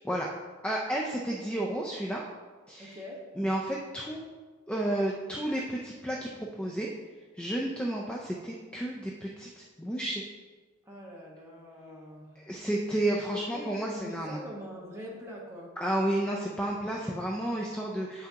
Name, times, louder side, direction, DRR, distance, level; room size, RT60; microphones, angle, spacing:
voice 1, 0.6-2.2 2.7-3.0 3.4-4.3 4.7-6.3 6.6-6.9 7.3-10.2 12.4-14.4 15.8-18.3, right 1 dB, 5° left, -2 dB, 0.4 m, -31 dB
voice 2, 2.8-3.3 10.8-12.5 13.0-15.8, equal, 10° right, -3 dB, 1.2 m, -43 dB
8.3 x 5.7 x 2.9 m, 1.4 s
head